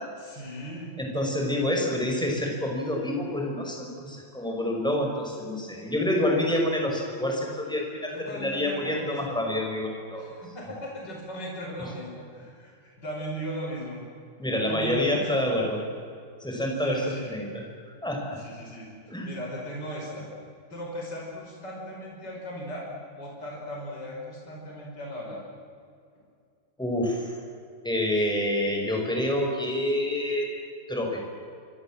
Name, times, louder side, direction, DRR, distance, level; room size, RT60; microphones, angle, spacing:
voice 1, 0.2-0.9 8.1-9.3 10.2-14.0 14.5-15.6 16.8-17.3 18.4-18.9 19.2-20.3 20.7-22.8 23.2-25.4, equal, 50° left, -2 dB, 6.0 m, -37 dB
voice 2, 1.0-10.3 14.4-15.8 16.4-17.6 18.0-18.4 19.1-19.3 26.8-27.4 27.8-30.5 30.9-31.2, left 1 dB, ahead, 0 dB, 5.5 m, -27 dB
27.0 x 25.5 x 7.6 m, 2.3 s
omnidirectional pair, 2.3 m